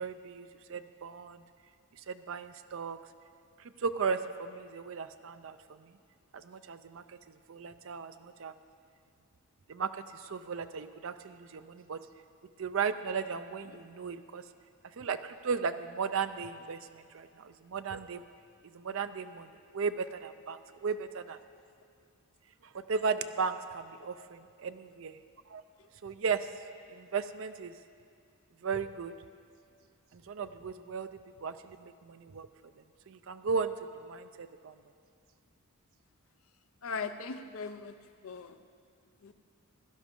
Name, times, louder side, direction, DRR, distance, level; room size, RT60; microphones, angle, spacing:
voice 1, 0.0-1.4 1.9-3.0 3.6-6.0 6.3-8.5 9.7-12.0 12.6-14.4 14.8-18.2 18.7-21.4 22.6-25.2 25.5-25.6 26.0-26.5 26.9-27.7 28.6-29.1 30.1-32.5 33.1-34.8, right 5 dB, 60° right, 10 dB, 0.4 m, -36 dB
voice 2, 36.8-38.0 38.2-38.6 39.2-39.3, left 5 dB, 65° left, 10 dB, 0.5 m, -38 dB
16.5 x 11.0 x 3.7 m, 2.3 s
head